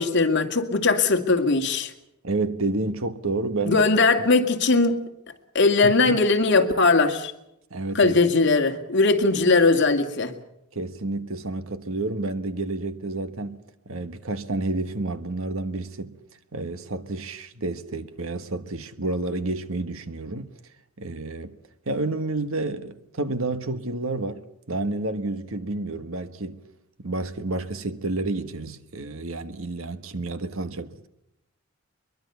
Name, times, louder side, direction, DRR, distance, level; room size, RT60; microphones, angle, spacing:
voice 1, 0.0-1.9 3.7-5.0 5.5-7.3 7.9-10.3, left 3 dB, 55° left, 2.2 m, -20 dB
voice 2, 2.2-3.8 5.8-6.2 7.7-8.2 10.7-16.1 16.5-20.5 21.0-21.6 21.8-26.6 27.0-31.1, right 2 dB, 70° right, 1.5 m, -30 dB
23.0 x 22.5 x 6.9 m
head